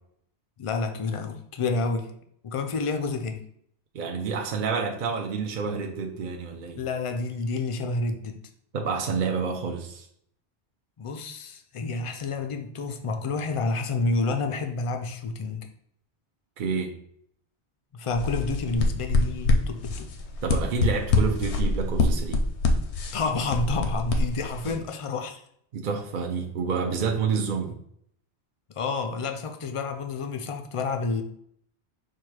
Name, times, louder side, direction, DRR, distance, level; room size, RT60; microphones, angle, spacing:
voice 1, 0.6-2.1 2.4-3.5 6.8-8.4 11.0-15.7 17.9-20.1 23.1-25.4 28.7-31.2, left 3 dB, 60° left, 5 dB, 0.3 m, -29 dB
voice 2, 3.9-6.8 8.7-10.1 16.6-16.9 20.4-22.4 24.6-24.7 25.7-27.7, right 5 dB, 55° right, 3 dB, 0.6 m, -28 dB
sound 1, 18.1-24.7, left 3 dB, 90° left, 0.9 m, -25 dB
4.5 x 2.4 x 4.6 m, 0.68 s
omnidirectional pair, 1.1 m